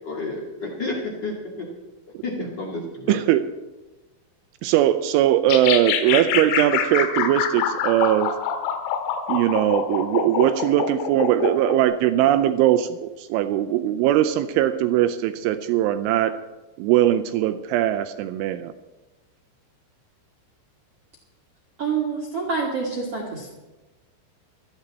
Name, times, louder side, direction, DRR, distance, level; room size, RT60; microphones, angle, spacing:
voice 1, 0.0-1.7 2.2-3.2, left 2 dB, 60° left, -2 dB, 1.1 m, -31 dB
voice 2, 3.1-3.4 4.6-8.3 9.3-16.4 16.8-18.7, right 12 dB, 80° right, 10 dB, 2.9 m, -20 dB
sound 1, 5.5-11.8, left 8 dB, 90° left, 3.9 m, -25 dB
voice 3, 21.8-23.5, right 5 dB, 55° right, -2 dB, 1.7 m, -27 dB
17.5 x 13.5 x 4.1 m, 1.1 s
omnidirectional pair, 5.8 m